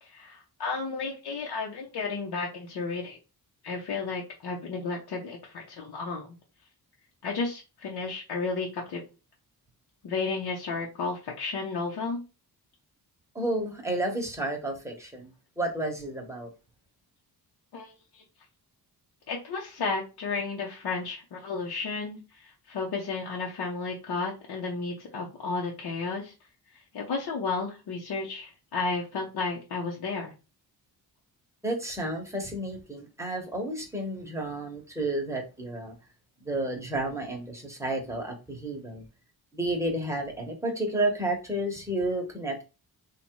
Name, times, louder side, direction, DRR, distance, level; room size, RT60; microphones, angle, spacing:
voice 1, 0.0-3.2 3.6-6.3 7.2-9.0 10.0-12.2 17.7-18.2 19.3-26.3 26.9-30.3, left 4 dB, 80° left, 1.0 m, -33 dB
voice 2, 13.3-16.5 31.6-35.9 36.4-39.0 39.5-42.6, right 1 dB, 5° right, 1.1 m, -31 dB
4.1 x 2.5 x 4.5 m
wide cardioid pair, 165°, 39 cm